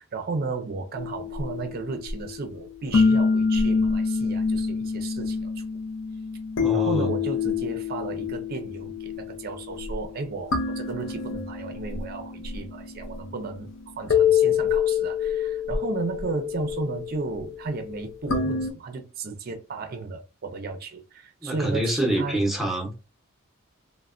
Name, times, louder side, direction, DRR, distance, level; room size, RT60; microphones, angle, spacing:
voice 1, 0.0-5.6 6.7-13.7 14.0-22.4, right 4 dB, 45° right, 0.4 m, -34 dB
sound 1, 1.0-18.7, left 6 dB, 60° left, 0.5 m, -27 dB
voice 2, 6.6-7.1 21.4-22.9, right 1 dB, ahead, 0.7 m, -26 dB
3.2 x 2.1 x 2.4 m
head